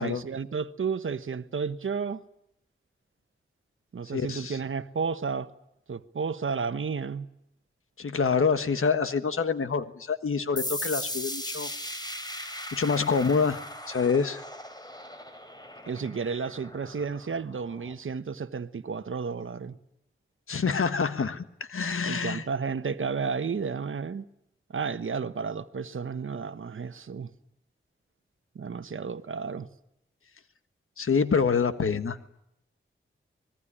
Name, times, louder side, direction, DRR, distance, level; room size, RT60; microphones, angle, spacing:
voice 1, 0.0-2.2 3.9-5.5 5.9-7.3 15.9-19.8 22.1-24.3 24.7-27.3 28.5-29.7, right 5 dB, 70° right, 1.1 m, -32 dB
voice 2, 4.1-4.6 8.0-11.7 12.7-13.6 13.9-14.4 20.5-21.4 21.7-22.4 31.0-32.3, left 5 dB, 80° left, 1.4 m, -26 dB
sound 1, 10.6-17.9, left 1 dB, 20° left, 3.9 m, -38 dB
25.0 x 20.0 x 10.0 m
cardioid pair, 55°, 21 cm